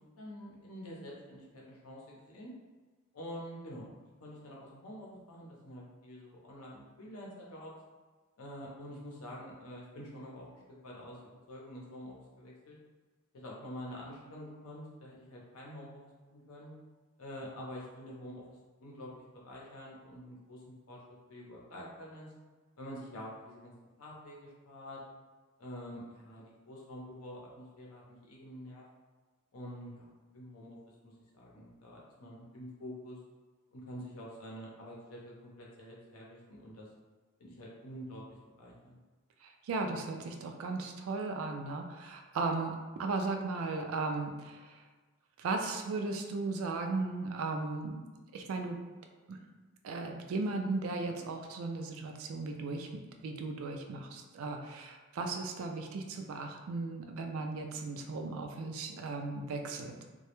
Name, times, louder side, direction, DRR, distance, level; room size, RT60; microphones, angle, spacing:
voice 1, 0.2-2.5 3.1-3.9 4.2-7.7 8.4-12.8 13.3-16.7 17.2-21.0 21.3-22.3 22.8-23.7 24.0-25.0 25.6-28.9 29.5-30.1 30.3-30.8 31.0-33.2 33.7-36.9 37.4-39.0, equal, 80° left, -3 dB, 0.6 m, -47 dB
voice 2, 39.4-44.8 45.4-48.0 48.3-48.8 49.3-49.4 49.8-60.0, right 3 dB, 70° right, 3 dB, 0.3 m, -36 dB
2.2 x 2.0 x 2.9 m, 1.3 s
head